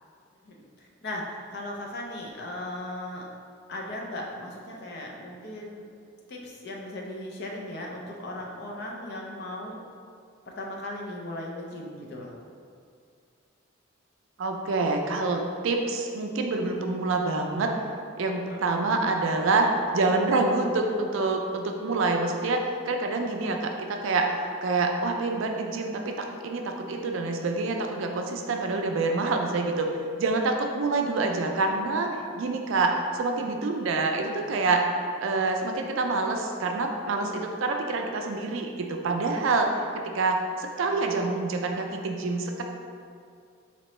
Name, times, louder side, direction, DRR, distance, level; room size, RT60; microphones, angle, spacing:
voice 1, 0.4-3.3 3.7-5.9 6.3-9.8 10.6-12.4 18.5-18.9, left 1 dB, 50° left, -1 dB, 0.5 m, -37 dB
voice 2, 14.4-17.7 18.2-29.9 30.2-32.1 32.4-34.8 35.2-39.8 40.1-42.6, right 3 dB, 70° right, 3 dB, 0.4 m, -26 dB
4.3 x 2.9 x 3.0 m, 2.3 s
head